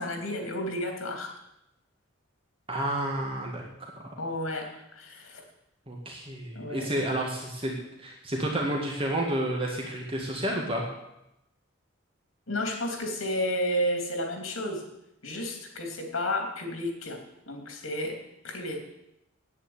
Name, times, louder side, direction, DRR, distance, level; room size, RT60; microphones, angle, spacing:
voice 1, 0.0-1.3 4.2-5.4 6.5-6.9 12.5-14.9 15.2-18.8, left 1 dB, 85° left, 4 dB, 2.9 m, -32 dB
voice 2, 2.7-4.1 5.9-10.8, right 1 dB, 30° right, -1 dB, 2.0 m, -31 dB
10.0 x 9.0 x 8.6 m, 0.86 s
head